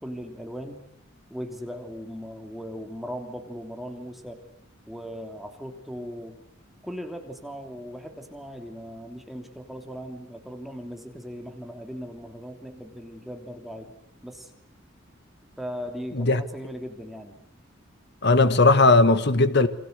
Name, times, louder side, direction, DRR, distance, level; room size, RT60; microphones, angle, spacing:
voice 1, 0.0-0.9 1.3-4.4 4.9-6.4 6.8-13.9 14.2-14.5 15.6-17.4, equal, ahead, 3.1 m, -38 dB
voice 2, 18.2-19.7, left 3 dB, 55° left, 1.5 m, -18 dB
29.5 x 24.5 x 8.2 m
head